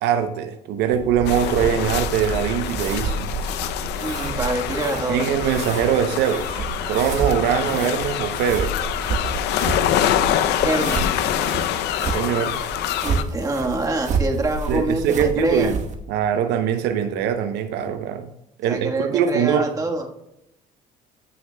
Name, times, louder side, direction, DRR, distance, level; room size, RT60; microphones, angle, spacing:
voice 1, 0.0-3.3 5.1-8.7 12.1-12.6 14.7-15.8 16.1-18.3 18.6-19.7, right 8 dB, 85° right, 8 dB, 0.7 m, -22 dB
sound 1, 0.9-16.0, right 3 dB, 45° right, 1.1 m, -30 dB
sound 2, 1.3-13.2, left 11 dB, 85° left, 0.5 m, -25 dB
voice 2, 4.0-5.3 10.6-11.1 13.0-15.7 18.7-20.1, right 2 dB, 20° right, 1 dB, 1.4 m, -25 dB
14.5 x 6.5 x 2.2 m, 0.83 s
cardioid pair, 110°, 17 cm